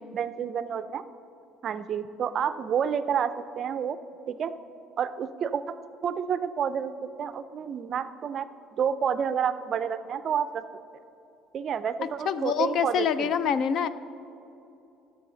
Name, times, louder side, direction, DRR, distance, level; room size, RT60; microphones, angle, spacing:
voice 1, 0.1-1.0 1.6-4.0 4.3-4.5 5.0-5.8 6.0-8.5 8.8-10.6 11.5-13.3, right 7 dB, 40° right, 13 dB, 0.4 m, -29 dB
voice 2, 12.3-13.9, left 7 dB, 55° left, 14 dB, 0.4 m, -25 dB
15.0 x 6.9 x 3.8 m, 2.9 s
cardioid pair, 140°, 0 cm